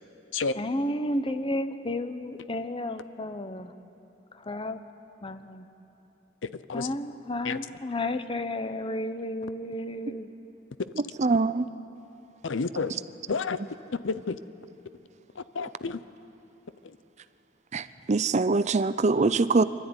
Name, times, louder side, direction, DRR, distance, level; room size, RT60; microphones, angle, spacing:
voice 1, 0.6-3.7 4.5-4.8 5.2-5.7 6.7-10.3, left 1 dB, 25° left, 0.9 m, -32 dB
voice 2, 10.9-11.7 12.9-13.0 17.7-19.6, right 3 dB, 35° right, 0.5 m, -24 dB
voice 3, 12.4-12.9 13.3-13.6 14.0-14.3 15.6-16.0, left 4 dB, 75° left, 0.7 m, -29 dB
24.5 x 13.0 x 9.6 m
head